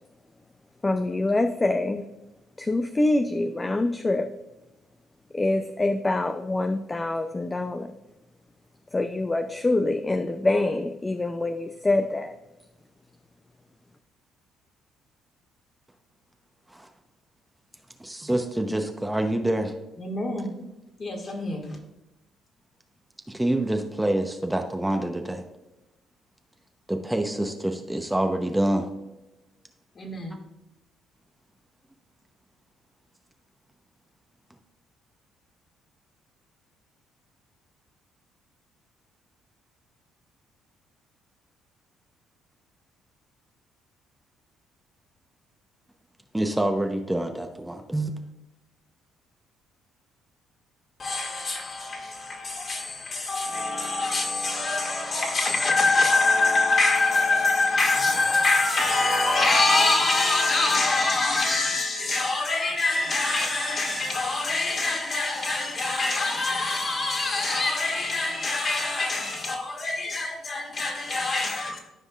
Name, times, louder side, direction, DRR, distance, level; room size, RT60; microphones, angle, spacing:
voice 1, 0.8-2.0 2.6-4.3 5.3-8.0 8.9-12.4, left 2 dB, 25° left, 0.5 m, -25 dB
voice 2, 18.0-19.7 23.3-25.4 26.9-28.9 46.3-48.1, right 1 dB, 10° right, 0.9 m, -26 dB
voice 3, 20.0-20.5 21.0-21.8 30.0-30.4 51.0-71.8, left 3 dB, 45° left, 2.2 m, -25 dB
13.5 x 5.3 x 2.4 m
hypercardioid pair, 55°, 0 cm